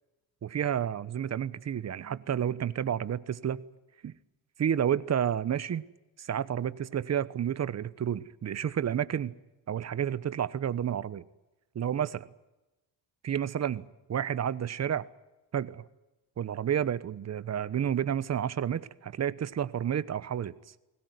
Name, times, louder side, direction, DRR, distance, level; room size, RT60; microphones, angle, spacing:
voice 1, 0.4-3.6 4.0-4.1 4.6-5.8 6.2-9.3 9.7-11.2 11.7-12.3 13.2-15.1 15.5-15.8 16.4-20.5, right 9 dB, 45° right, 17 dB, 1.1 m, -30 dB
21.0 x 18.0 x 9.6 m, 1.0 s
cardioid pair, 105°, 38 cm